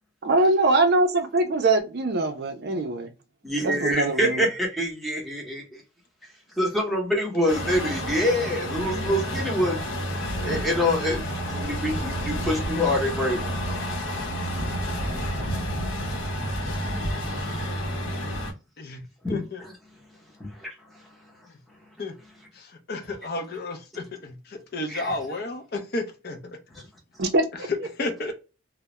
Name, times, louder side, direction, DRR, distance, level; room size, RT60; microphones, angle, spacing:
voice 1, 0.2-3.1 3.8-4.4 27.2-27.7, right 2 dB, 50° right, 0.4 m, -22 dB
voice 2, 3.4-5.8 6.6-9.9 10.4-13.4 19.2-19.7 20.4-20.7 24.9-25.2 26.7-26.8, left 1 dB, ahead, 0.7 m, -26 dB
Truck, 7.5-18.5, equal, 75° left, 0.8 m, -30 dB
voice 3, 19.3-19.6 22.0-22.1 22.6-26.4 28.0-28.3, left 2 dB, 50° left, 0.5 m, -32 dB
2.2 x 2.0 x 2.8 m
head